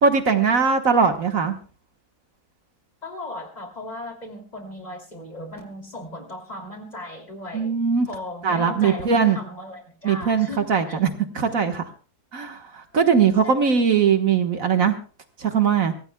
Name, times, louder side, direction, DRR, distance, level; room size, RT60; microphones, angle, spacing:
voice 1, 0.0-1.6 7.5-8.1 8.4-9.4 10.0-11.1 11.4-11.8 12.3-15.0 15.4-15.9, right 6 dB, 60° right, 6 dB, 1.8 m, -20 dB
voice 2, 3.0-7.7 8.1-11.0 12.9-13.0 13.4-13.5, left 1 dB, 25° left, 2 dB, 2.9 m, -37 dB
24.5 x 17.5 x 2.2 m, 0.36 s
omnidirectional pair, 1.6 m